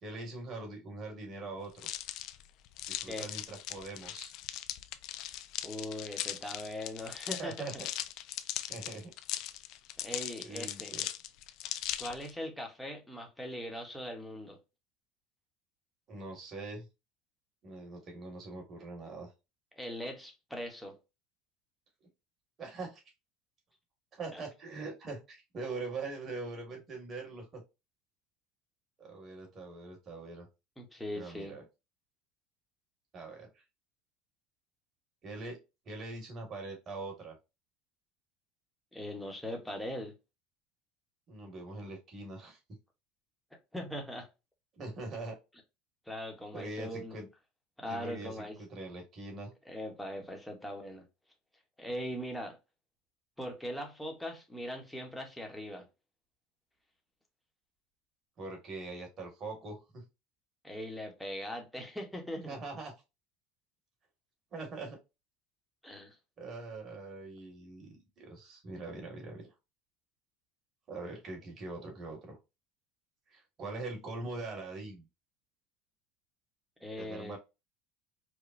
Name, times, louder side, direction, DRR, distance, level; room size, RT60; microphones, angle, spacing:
voice 1, 0.0-1.9 2.9-4.3 7.4-7.9 8.7-9.1 10.4-11.1 16.1-16.9 17.6-19.3 22.6-23.0 24.1-27.6 29.0-30.4 31.1-31.6 33.1-33.5 35.2-35.6 35.8-37.4 41.3-42.6 44.7-45.4 46.5-47.3 47.9-49.5 58.4-60.0 62.4-62.9 64.5-65.0 66.4-69.5 70.9-72.4 73.3-75.1 77.0-77.4, right 3 dB, 30° right, 1.7 m, -42 dB
sound 1, 1.8-12.3, left 13 dB, 55° left, 0.4 m, -39 dB
voice 2, 5.6-7.8 10.0-10.9 12.0-14.6 19.8-21.0 24.3-24.4 30.8-31.5 38.9-40.1 43.7-44.3 46.1-47.2 47.8-48.6 49.7-51.1 51.8-52.6 53.4-55.9 60.6-62.6 65.8-66.2 76.8-77.4, equal, 5° left, 1.0 m, -40 dB
5.0 x 2.2 x 2.5 m
supercardioid pair, 140°, 0 cm